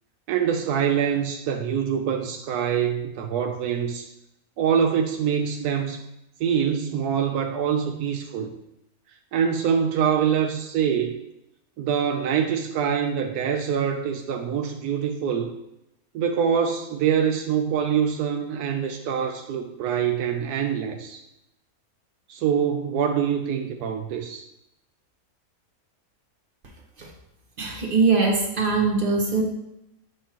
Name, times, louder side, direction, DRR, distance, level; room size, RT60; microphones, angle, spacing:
voice 1, 0.3-4.1 4.6-6.0 6.4-8.5 9.3-11.2 11.8-15.5 16.1-21.2 22.3-24.4, right 7 dB, 90° right, 5 dB, 1.1 m, -24 dB
voice 2, 27.6-29.4, right 4 dB, 40° right, 1 dB, 1.1 m, -22 dB
8.2 x 5.5 x 2.9 m, 0.87 s
omnidirectional pair, 1.6 m